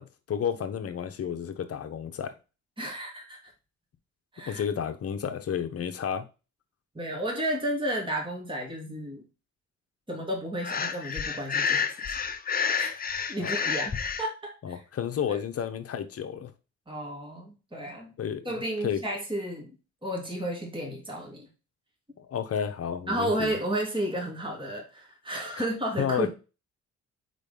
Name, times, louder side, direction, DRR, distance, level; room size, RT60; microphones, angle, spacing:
voice 1, 0.0-2.3 4.5-6.2 13.4-13.5 14.6-16.5 18.2-18.5 18.8-19.0 22.2-23.6 26.0-26.3, left 8 dB, 50° left, 1.0 m, -31 dB
voice 2, 2.8-3.5 4.3-4.6 6.9-9.2 10.1-11.9 12.8-12.9 13.2-14.8 15.3-15.4 16.9-18.1 18.4-19.8 20.0-21.5 23.1-26.3, right 1 dB, 15° right, 2.8 m, -32 dB
Breathing, 10.6-14.3, left 6 dB, 30° left, 0.8 m, -29 dB
4.6 x 4.0 x 5.2 m
cardioid pair, 90°, 30 cm